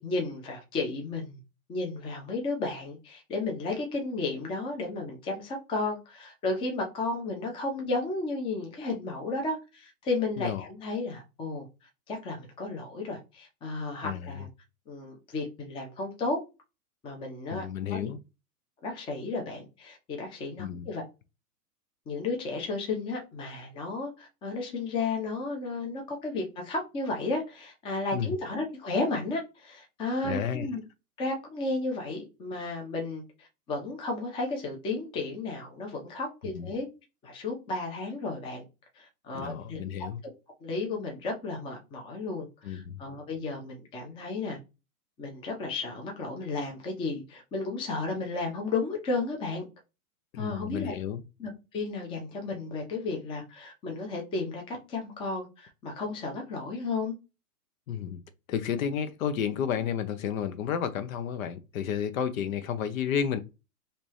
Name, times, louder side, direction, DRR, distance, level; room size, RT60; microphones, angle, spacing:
voice 1, 0.0-1.4 1.7-11.7 12.1-14.5 14.9-16.4 17.0-17.6 17.9-18.0 18.8-21.0 22.1-30.8 31.2-36.9 37.2-38.6 39.0-39.8 40.6-44.6 45.2-49.7 50.4-50.9 51.4-57.1, left 3 dB, 10° left, 0.6 m, -33 dB
voice 2, 10.4-10.7 14.0-14.5 17.5-18.2 20.6-20.9 28.1-28.3 30.2-30.7 36.5-36.7 39.3-40.2 42.6-43.0 50.3-51.2 57.9-58.2 58.5-63.4, left 8 dB, 60° left, 0.7 m, -31 dB
3.2 x 2.8 x 3.1 m
hypercardioid pair, 135°, 46 cm